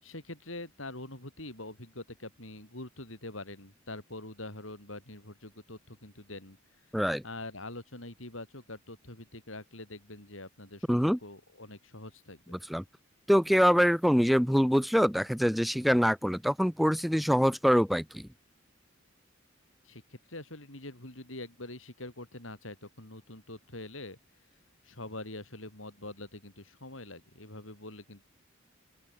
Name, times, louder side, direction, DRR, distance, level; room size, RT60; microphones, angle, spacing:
voice 1, 0.0-6.6 7.2-12.6 19.8-24.2 24.8-28.2, left 2 dB, 75° left, 7.6 m, -44 dB
voice 2, 10.9-11.2 12.7-12.8 13.3-18.3, equal, ahead, 0.9 m, -24 dB
open air
head